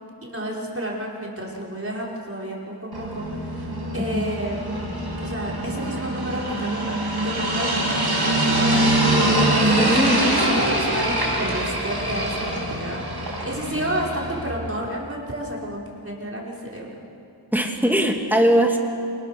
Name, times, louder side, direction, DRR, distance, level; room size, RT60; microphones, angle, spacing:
voice 1, 0.2-4.6 5.2-6.9 7.2-13.0 13.4-16.9, right 1 dB, 35° right, -4 dB, 5.2 m, -31 dB
sound 1, 2.9-14.5, right 1 dB, 75° right, 5.9 m, -24 dB
voice 2, 4.0-4.3 9.7-10.4 17.5-18.8, equal, 5° right, 2 dB, 2.6 m, -21 dB
27.5 x 19.5 x 6.8 m, 2.6 s
wide cardioid pair, 50°, 40 cm